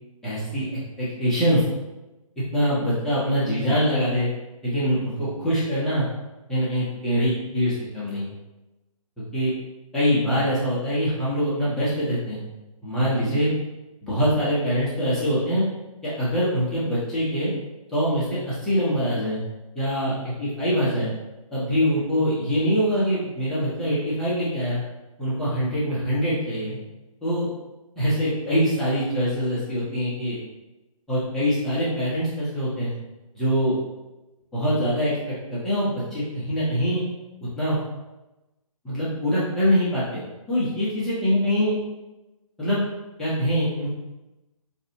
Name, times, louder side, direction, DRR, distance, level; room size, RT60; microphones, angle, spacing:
voice 1, 0.2-0.7 1.0-1.6 2.5-4.3 4.6-6.1 6.5-8.3 9.3-9.5 9.9-12.4 12.8-13.5 14.0-15.6 16.0-17.5 17.9-19.4 19.7-21.1 21.5-24.8 25.2-26.8 27.2-27.5 28.0-30.4 31.1-32.9 33.3-33.8 34.5-37.0 37.4-37.8 38.8-40.2 40.5-41.8 42.6-42.8 43.2-43.9, equal, ahead, -11 dB, 0.6 m, -24 dB
4.0 x 2.6 x 2.7 m, 1.0 s
hypercardioid pair, 150°, 18 cm